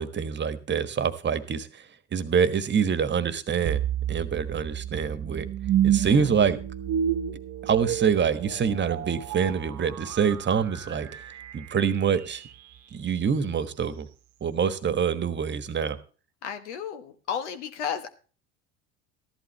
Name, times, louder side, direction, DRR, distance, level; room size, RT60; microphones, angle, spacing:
voice 1, 0.0-3.8 4.1-5.5 5.8-6.6 7.6-11.2 11.5-12.4 12.9-14.1 14.4-16.0, right 7 dB, 30° right, 13 dB, 1.3 m, -25 dB
sound 1, 3.6-12.8, right 10 dB, 55° right, 1.1 m, -30 dB
voice 2, 5.9-6.3 16.4-18.1, left 7 dB, 80° left, 8 dB, 1.4 m, -33 dB
14.0 x 11.5 x 3.2 m, 0.37 s
hypercardioid pair, 70°, 35 cm